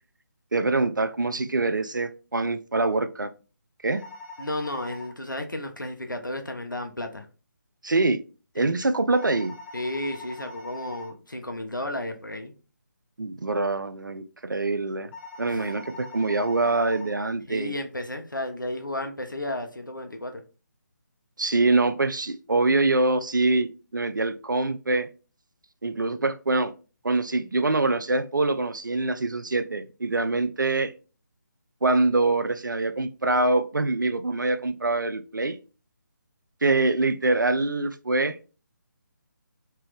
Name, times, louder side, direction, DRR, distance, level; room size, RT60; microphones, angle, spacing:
voice 1, 0.5-3.3 3.8-4.0 7.8-8.2 8.5-9.5 13.2-15.1 15.4-17.8 21.4-25.1 25.8-26.7 27.0-30.9 31.8-35.6 36.6-38.4, right 2 dB, 80° right, 0.4 m, -24 dB
sound 1, 4.0-5.1 9.1-11.1 15.1-17.1, left 3 dB, 35° left, 1.4 m, -42 dB
voice 2, 4.4-7.3 8.6-8.7 9.7-12.5 15.5-15.6 17.5-20.4, left 1 dB, 90° left, 0.9 m, -33 dB
3.3 x 3.0 x 3.3 m
figure-of-eight pair, 150°, 10 cm